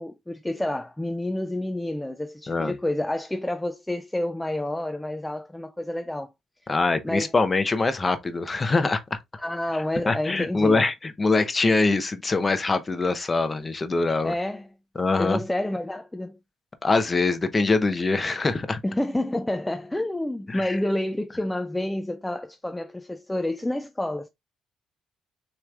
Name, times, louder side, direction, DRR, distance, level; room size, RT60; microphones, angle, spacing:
voice 1, 0.0-6.3 7.0-7.3 9.4-10.8 14.2-14.7 15.2-16.4 18.8-24.3, left 1 dB, 10° left, 0.4 m, -29 dB
voice 2, 6.7-9.2 10.1-14.3 15.0-15.4 16.8-18.8 20.5-20.8, left 3 dB, 30° left, 0.8 m, -23 dB
6.1 x 3.2 x 2.4 m
cardioid pair, 80°, 0 cm